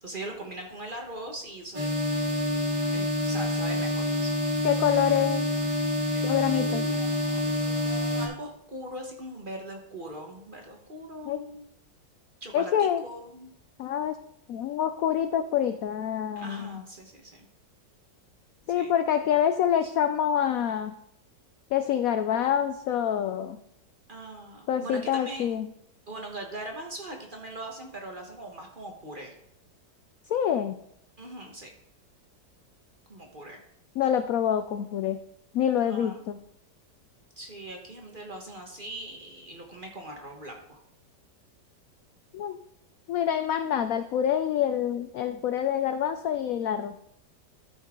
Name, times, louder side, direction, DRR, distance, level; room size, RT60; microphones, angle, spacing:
voice 1, 0.0-1.9 2.9-4.3 6.1-6.2 6.5-11.7 12.4-12.7 13.0-13.5 16.4-17.5 18.7-18.9 19.8-19.9 24.1-25.6 26.1-29.3 31.2-31.7 33.1-33.6 35.8-36.2 37.4-40.8, right 1 dB, 35° right, 2 dB, 1.2 m, -41 dB
sound 1, 1.7-8.3, left 1 dB, 20° right, 1.9 m, -27 dB
voice 2, 4.6-5.5 6.2-6.9 11.3-11.4 12.5-13.0 13.8-14.2 14.5-16.8 18.7-20.9 21.7-23.6 24.7-25.7 30.3-30.8 34.0-35.2 35.5-36.4 42.3-42.6 43.1-46.9, left 9 dB, 75° left, 9 dB, 0.8 m, -26 dB
13.0 x 5.5 x 3.7 m, 0.74 s
omnidirectional pair, 1.9 m